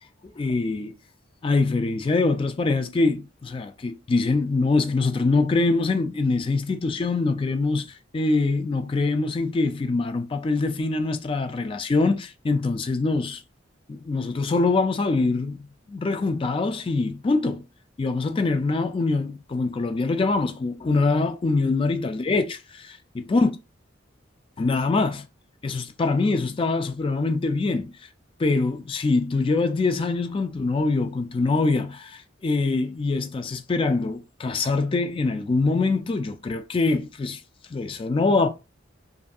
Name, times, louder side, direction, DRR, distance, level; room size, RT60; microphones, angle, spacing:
voice 1, 0.4-0.9 1.4-7.9 8.1-13.4 13.9-17.7 18.0-23.5 24.6-25.3 25.6-27.9 28.4-37.4 37.7-38.5, left 3 dB, 25° left, 0.3 m, -24 dB
2.6 x 2.5 x 2.3 m
head